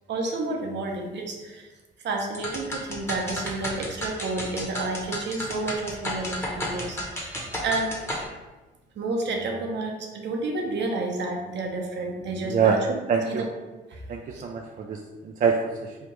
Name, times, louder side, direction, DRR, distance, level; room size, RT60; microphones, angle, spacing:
voice 1, 0.1-1.7 2.0-8.0 9.0-13.0 13.2-13.4 13.9-14.0 14.3-14.4, right 2 dB, 65° right, 1 dB, 0.8 m, -30 dB
sound 1, 2.3-8.3, left 1 dB, 10° left, 1.0 m, -33 dB
voice 2, 12.4-12.8 13.1-13.4 14.1-16.0, right 6 dB, 40° right, 2 dB, 0.4 m, -25 dB
3.4 x 2.5 x 4.4 m, 1.2 s
cardioid pair, 90°, 20 cm